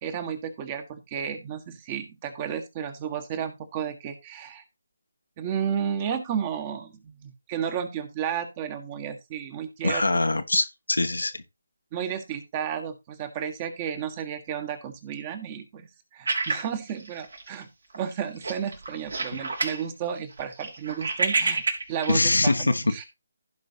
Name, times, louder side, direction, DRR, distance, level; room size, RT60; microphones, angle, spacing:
voice 1, 0.0-4.6 5.4-10.0 11.9-17.7 17.9-21.6 21.9-23.0, right 8 dB, 25° right, 1.5 m, -32 dB
voice 2, 9.8-11.4 19.3-19.4 22.1-22.8, left 2 dB, 75° left, 1.2 m, -23 dB
sound 1, 16.3-17.6 17.9-18.1 18.4-19.8 20.2-22.2, right 3 dB, 70° right, 3.8 m, -28 dB
15.5 x 5.3 x 2.8 m
figure-of-eight pair, 150°, 0 cm